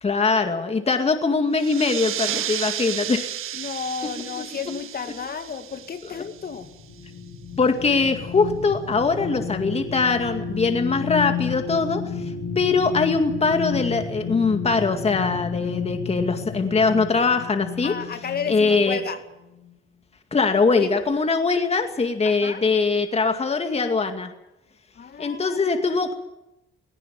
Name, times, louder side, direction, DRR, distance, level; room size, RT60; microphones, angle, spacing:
voice 1, 0.0-3.3 7.6-17.9 18.5-19.0 20.3-24.3 25.2-26.1, left 4 dB, 30° left, 6 dB, 2.2 m, -22 dB
sound 1, 1.5-6.7, right 11 dB, 75° right, 1.7 m, -32 dB
voice 2, 3.5-6.7 17.8-19.2 20.8-21.0 22.2-22.6 25.0-25.9, left 6 dB, 45° left, 8 dB, 2.4 m, -33 dB
sound 2, 6.2-19.1 19.6-19.7, left 6 dB, 90° left, 3.7 m, -32 dB
19.0 x 18.0 x 8.8 m, 0.93 s
cardioid pair, 105°, 21 cm